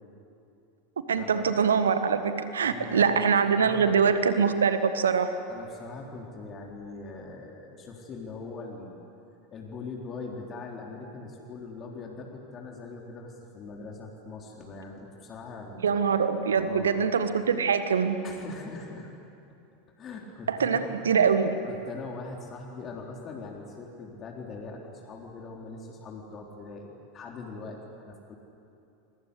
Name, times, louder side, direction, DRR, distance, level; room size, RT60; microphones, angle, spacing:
voice 1, 1.0-5.3 15.8-18.2 20.5-21.5, right 6 dB, 75° right, 10 dB, 1.6 m, -24 dB
voice 2, 2.6-4.2 5.5-9.1 9.5-16.0 16.5-17.0 18.2-19.1 20.0-21.3 21.6-28.4, left 3 dB, 30° left, 0 dB, 3.8 m, -42 dB
29.5 x 23.0 x 8.3 m, 2.7 s
figure-of-eight pair, 80°, 0 cm